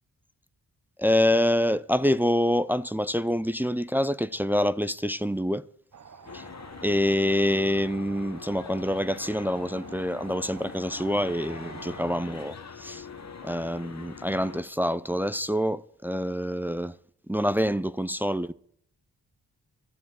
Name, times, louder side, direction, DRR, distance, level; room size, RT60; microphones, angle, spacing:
voice 1, 1.0-5.6 6.3-6.5 6.8-13.1 13.4-17.0 17.3-18.5, equal, 5° right, 0.6 m, -26 dB
sound 1, 5.9-12.2, right 6 dB, 50° right, 1.1 m, -47 dB
sound 2, 6.3-14.6, left 6 dB, 45° left, 1.2 m, -43 dB
12.5 x 7.3 x 8.6 m
cardioid pair, 50°, 36 cm